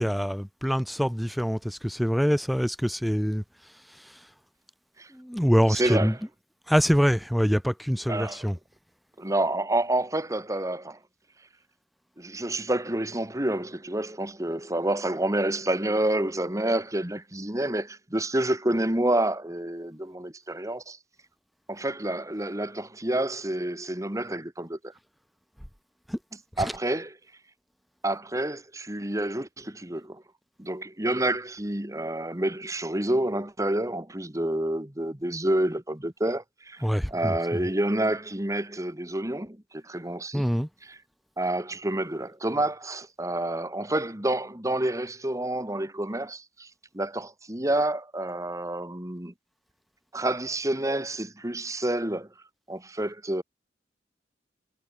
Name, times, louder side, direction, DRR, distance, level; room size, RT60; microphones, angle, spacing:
voice 1, 0.0-3.4 4.0-4.1 5.1-6.3 6.7-8.6 26.1-26.2 26.6-26.8 28.3-28.5 36.8-37.7 40.3-40.7, equal, ahead, 0.5 m, -25 dB
voice 2, 5.7-6.1 8.1-8.4 9.2-11.0 12.2-21.0 21.7-24.8 26.6-27.1 28.0-30.2 30.6-36.8 37.1-40.4 41.4-46.7 46.9-49.3 50.1-52.3 52.7-53.4, right 1 dB, 20° right, 1.9 m, -28 dB
head